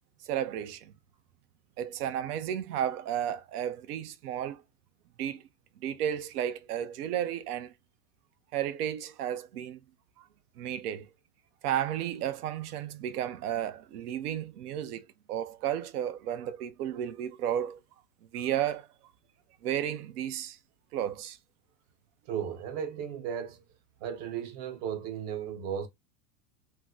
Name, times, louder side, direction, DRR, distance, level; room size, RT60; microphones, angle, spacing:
voice 1, 0.2-0.9 1.8-4.6 5.2-5.4 5.8-7.7 8.5-9.8 10.2-10.3 10.6-11.1 11.6-17.8 18.3-18.9 19.6-20.6 20.9-21.4, right 10 dB, 70° right, 0.7 m, -33 dB
voice 2, 22.3-23.6 24.0-25.9, right 8 dB, 50° right, 0.9 m, -35 dB
2.9 x 2.0 x 3.5 m
hypercardioid pair, 120°, 47 cm